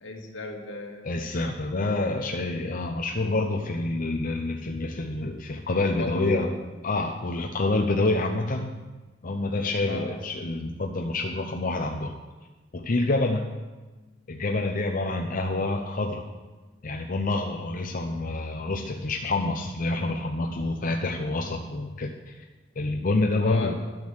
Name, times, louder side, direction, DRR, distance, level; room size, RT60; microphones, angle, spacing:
voice 1, 0.0-1.1 1.4-1.5 6.0-6.4 9.9-10.1 23.4-23.7, left 3 dB, 80° left, 1 dB, 1.9 m, -33 dB
voice 2, 1.0-6.5 6.8-8.7 9.2-12.2 12.7-13.5 14.3-16.3 16.8-22.1 22.8-23.7, left 2 dB, 45° left, 2 dB, 0.7 m, -27 dB
12.0 x 6.4 x 7.6 m, 1.2 s
head